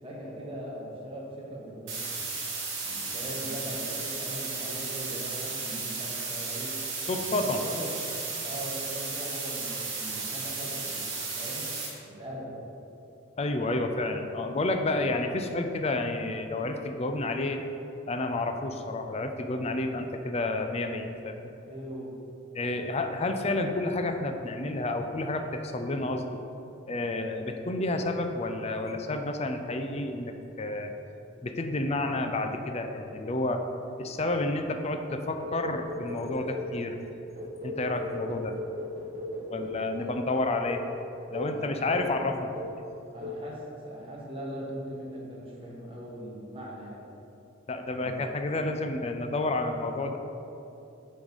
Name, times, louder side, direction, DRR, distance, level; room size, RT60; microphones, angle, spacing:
voice 1, 0.0-2.2 2.8-6.7 7.4-7.9 8.4-11.0 11.4-11.7 12.1-12.5 21.7-22.1 39.7-40.2 41.5-42.1 43.1-47.0 48.0-48.2 48.5-48.8, right 1 dB, 30° right, -5 dB, 1.4 m, -40 dB
sound 1, 1.9-11.9, right 4 dB, 75° right, 1.6 m, -34 dB
voice 2, 7.1-7.6 13.4-17.6 18.1-21.5 22.5-26.2 26.9-30.9 31.4-33.6 34.0-37.0 37.6-38.6 39.5-40.8 41.3-42.5 47.7-50.2, left 2 dB, 30° left, 6 dB, 0.5 m, -30 dB
sound 2, 35.4-36.8 37.4-40.2 40.7-40.9 41.3-41.6 42.0-42.3 42.6-42.9 43.2-43.5, left 1 dB, 50° right, 1.0 m, -37 dB
8.7 x 3.2 x 5.5 m, 2.9 s
head